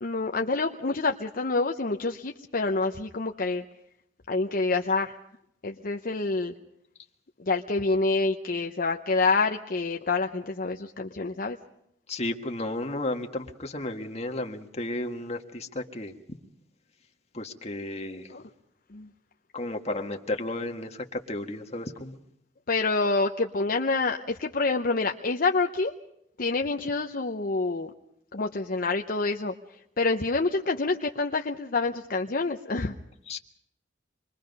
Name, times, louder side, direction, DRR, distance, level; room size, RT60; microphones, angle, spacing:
voice 1, 0.0-3.6 4.3-5.2 5.6-6.5 7.4-11.6 18.3-18.4 18.9-19.1 22.7-25.9 26.4-27.9 28.3-29.5 30.0-32.9, left 3 dB, 50° left, 3 dB, 0.8 m, -27 dB
voice 2, 12.1-16.1 17.3-18.3 19.5-22.2 33.3-33.4, left 2 dB, 35° left, 4 dB, 1.7 m, -33 dB
26.5 x 22.0 x 5.4 m, 0.76 s
head